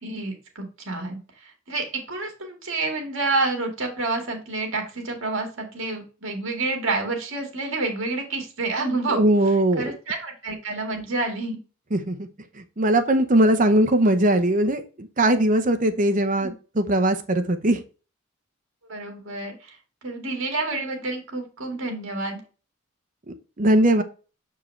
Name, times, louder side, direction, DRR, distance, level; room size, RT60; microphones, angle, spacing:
voice 1, 0.0-9.2 9.8-11.6 16.4-16.5 18.9-19.8 20.0-22.4, right 3 dB, 65° right, 2 dB, 2.0 m, -29 dB
voice 2, 9.1-9.9 11.9-12.2 12.8-17.8 23.6-24.0, right 1 dB, 40° right, 8 dB, 0.8 m, -20 dB
7.2 x 4.6 x 3.2 m, 0.35 s
head